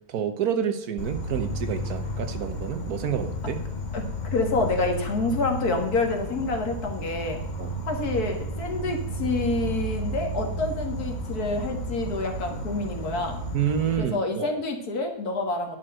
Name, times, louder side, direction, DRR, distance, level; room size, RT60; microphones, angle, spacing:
voice 1, 0.1-3.6 7.6-7.7 13.5-14.6, right 8 dB, 80° right, 8 dB, 1.5 m, -28 dB
Insect, 1.0-14.0, equal, 35° left, 1.0 m, -33 dB
voice 2, 4.3-7.4 7.9-13.4 13.9-15.8, left 3 dB, 85° left, 3 dB, 2.2 m, -27 dB
10.5 x 4.6 x 7.6 m, 0.79 s
omnidirectional pair, 1.6 m